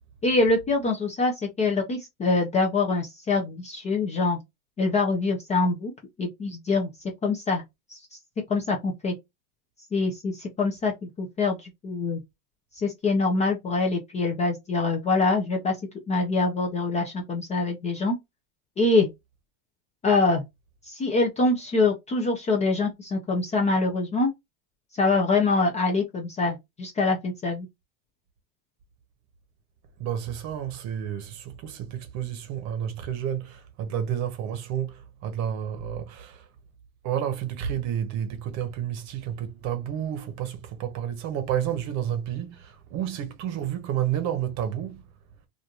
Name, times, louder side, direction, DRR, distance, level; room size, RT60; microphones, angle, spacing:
voice 1, 0.2-4.4 4.8-5.9 6.2-6.9 7.2-7.6 7.9-8.0 8.5-9.1 9.9-12.2 12.7-15.8 16.1-18.2 18.8-19.1 20.0-20.4 20.9-24.3 25.0-27.7, left 3 dB, 15° left, 0.4 m, -24 dB
voice 2, 30.0-36.5 37.0-45.0, right 10 dB, 40° right, 0.8 m, -30 dB
3.0 x 2.5 x 2.3 m
supercardioid pair, 125°, 41 cm